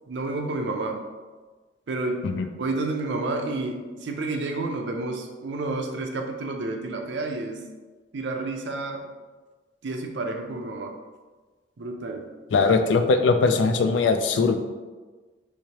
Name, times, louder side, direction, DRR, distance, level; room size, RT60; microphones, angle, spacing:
voice 1, 0.1-1.0 1.9-2.3 2.6-7.6 8.1-9.0 9.8-11.0 11.8-12.3, right 2 dB, 70° right, 3 dB, 0.5 m, -30 dB
voice 2, 12.5-14.6, left 4 dB, 75° left, 8 dB, 0.3 m, -20 dB
3.4 x 3.2 x 2.8 m, 1.3 s
head